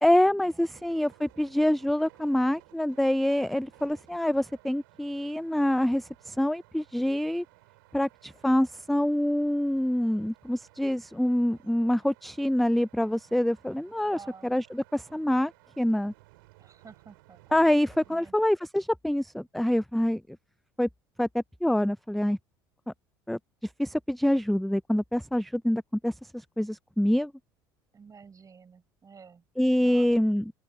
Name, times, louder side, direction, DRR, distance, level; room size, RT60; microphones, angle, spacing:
voice 1, 0.0-7.4 7.9-16.1 17.5-20.2 20.8-20.9 21.2-22.4 23.3-23.4 23.8-27.3 29.6-30.5, left 1 dB, ahead, 0.3 m, -26 dB
sound 1, 0.7-18.2, right 23 dB, 75° right, 4.5 m, -58 dB
voice 2, 14.1-14.5 16.6-17.4 18.1-18.4 27.9-29.4 29.8-30.1, right 6 dB, 30° right, 4.6 m, -51 dB
open air
hypercardioid pair, 75°, 11 cm